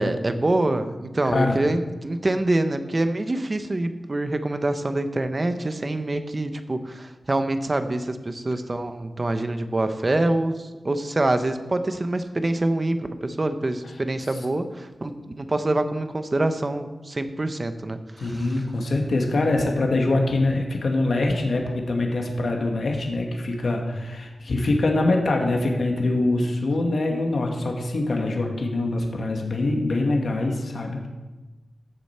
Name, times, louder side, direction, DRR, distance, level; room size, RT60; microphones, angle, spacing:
voice 1, 0.0-18.5, right 2 dB, 35° right, 9 dB, 0.9 m, -25 dB
voice 2, 1.2-1.6 18.2-31.1, left 2 dB, 70° left, 1 dB, 1.6 m, -24 dB
14.5 x 6.9 x 4.4 m, 1.1 s
wide cardioid pair, 70°, 0 cm